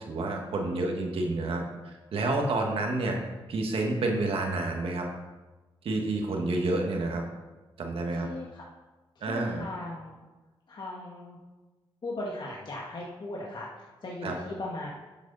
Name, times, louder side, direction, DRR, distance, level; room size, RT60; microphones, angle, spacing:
voice 1, 0.1-3.2 3.5-5.1 5.8-7.2 7.8-8.3 9.2-9.6 14.2-14.4, right 2 dB, 75° right, 1 dB, 1.9 m, -29 dB
voice 2, 6.4-6.9 8.2-8.6 9.3-10.2 10.7-11.4 12.0-14.9, left 2 dB, 55° left, -3 dB, 1.9 m, -38 dB
11.0 x 8.2 x 4.2 m, 1.2 s
cardioid pair, 85°, 10 cm